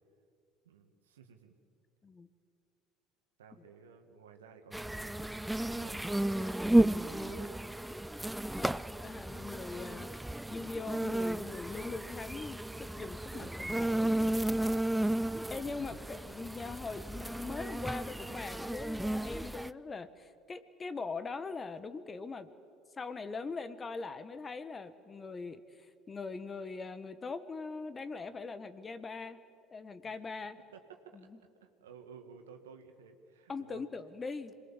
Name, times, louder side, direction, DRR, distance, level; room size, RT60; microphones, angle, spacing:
voice 1, 0.6-1.6 3.4-7.6 13.3-13.5 15.8-16.0 30.0-30.2 30.7-33.8, right 6 dB, 80° right, 5 dB, 2.0 m, -55 dB
sound 1, 4.7-19.7, right 1 dB, 5° right, 0.5 m, -33 dB
voice 2, 8.6-14.3 15.5-22.5 23.0-29.4 29.7-30.6 33.5-34.5, left 4 dB, 25° left, 12 dB, 1.4 m, -41 dB
27.0 x 21.0 x 7.4 m, 2.4 s
hypercardioid pair, 70°, 0 cm